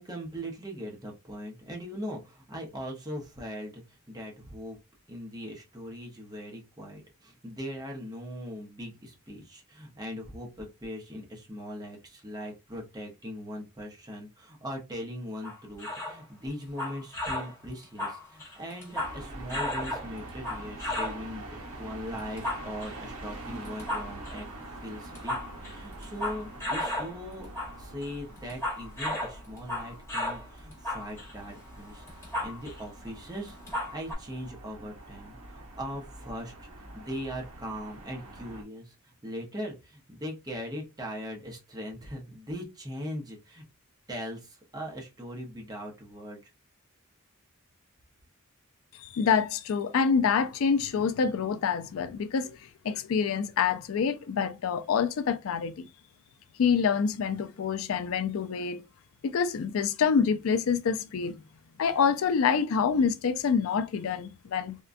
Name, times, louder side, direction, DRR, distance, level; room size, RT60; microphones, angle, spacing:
voice 1, 0.0-4.8 5.1-24.5 24.8-27.5 27.8-32.0 32.4-33.6 33.9-36.5 36.9-38.9 39.2-43.6 44.1-46.4, equal, 20° right, 0.7 m, -40 dB
sound 1, 15.4-16.2 16.6-17.5 17.8-19.2 19.5-21.2 22.2-23.0 23.6-24.4 25.0-27.1 27.4-27.8 28.0-30.5 30.7-32.8 33.1-33.2 33.5-34.1, left 1 dB, 15° left, 1.1 m, -34 dB
sound 2, 18.9-38.6, right 1 dB, 85° right, 1.0 m, -45 dB
voice 2, 49.0-55.9 56.6-58.8 59.2-61.4 61.8-64.8, left 6 dB, 70° left, 0.4 m, -26 dB
3.6 x 2.2 x 2.5 m
head